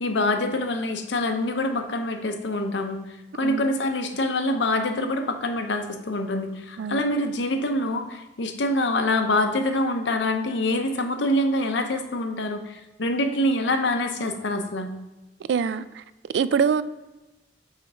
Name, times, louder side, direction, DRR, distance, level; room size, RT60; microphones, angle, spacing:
voice 1, 0.0-3.0 3.3-14.9, left 1 dB, 85° left, 0.7 m, -25 dB
voice 2, 15.5-15.8 16.3-16.8, right 6 dB, 75° right, 0.3 m, -23 dB
5.6 x 4.5 x 5.0 m
head